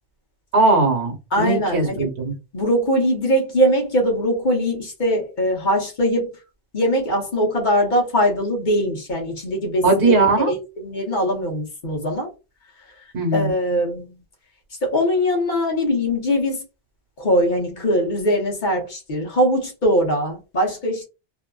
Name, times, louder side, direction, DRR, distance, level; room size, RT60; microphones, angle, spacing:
voice 1, 0.5-2.3 9.8-10.5 13.1-13.5, right 3 dB, 65° right, 1.2 m, -19 dB
voice 2, 1.3-2.1 2.5-6.4 6.7-12.3 13.3-14.2 14.8-16.6 17.2-21.0, equal, 50° left, 1.0 m, -21 dB
2.7 x 2.4 x 2.2 m
omnidirectional pair, 1.1 m